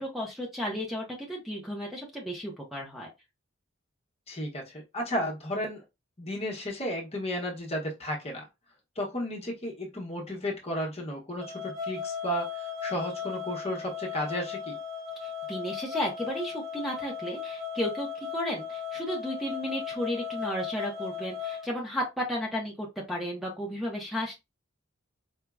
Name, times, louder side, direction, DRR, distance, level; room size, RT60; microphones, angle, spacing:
voice 1, 0.0-3.1 15.2-24.4, equal, ahead, 0.9 m, -33 dB
voice 2, 4.3-5.8 6.2-8.4 9.0-14.8, equal, 30° left, 1.1 m, -33 dB
sound 1, 11.4-21.6, left 7 dB, 35° right, 1.9 m, -37 dB
4.6 x 2.8 x 2.3 m
head